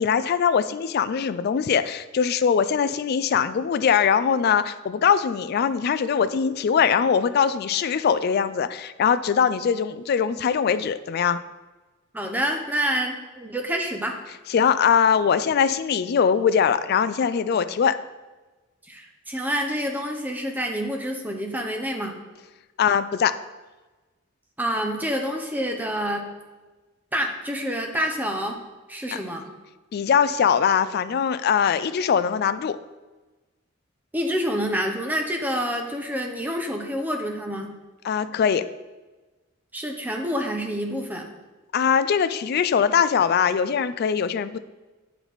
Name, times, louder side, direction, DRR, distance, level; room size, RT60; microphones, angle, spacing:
voice 1, 0.0-11.4 14.5-18.0 22.8-23.3 29.9-32.8 38.0-38.6 41.7-44.6, left 7 dB, 50° left, 13 dB, 0.3 m, -21 dB
voice 2, 12.1-14.2 18.9-22.2 24.6-26.2 27.1-28.6 28.9-29.5 34.1-37.8 39.7-41.3, equal, 10° right, 2 dB, 0.7 m, -27 dB
8.1 x 4.5 x 4.0 m, 1.2 s
head